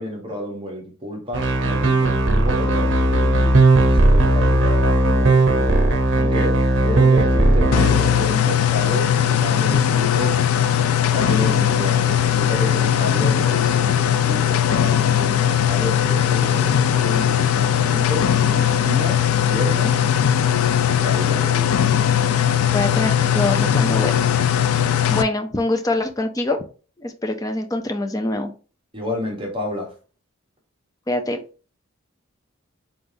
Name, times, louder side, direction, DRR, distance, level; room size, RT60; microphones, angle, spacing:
voice 1, 0.0-5.8 6.2-10.4 11.1-20.0 20.9-21.9 28.9-29.9, left 1 dB, 25° right, 1 dB, 1.0 m, -30 dB
sound 1, 1.3-8.3, right 2 dB, 60° right, 0.8 m, -17 dB
sound 2, 7.7-25.2, left 9 dB, 85° left, 0.4 m, -19 dB
voice 2, 22.6-24.3 25.1-26.6 27.0-28.5 31.1-31.4, left 2 dB, 15° left, 6 dB, 0.5 m, -24 dB
4.0 x 3.4 x 2.6 m, 0.37 s
head